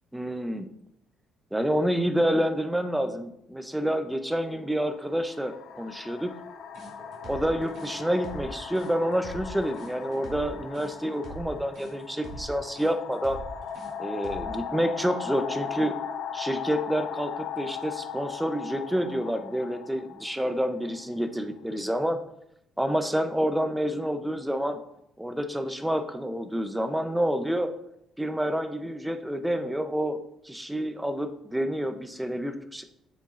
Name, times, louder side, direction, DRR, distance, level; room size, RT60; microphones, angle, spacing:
voice 1, 0.1-0.7 1.5-6.4 7.3-13.4 14.0-16.0 16.3-22.2 22.8-24.8 25.2-27.7 28.2-30.2 30.4-32.8, equal, 5° right, 8 dB, 0.7 m, -28 dB
sound 1, 3.8-4.0 4.9-21.6, left 7 dB, 70° left, 0.7 m, -38 dB
sound 2, 6.7-14.6, right 1 dB, 65° right, 3.1 m, -43 dB
9.3 x 7.2 x 2.5 m, 0.78 s
cardioid pair, 130°, 0 cm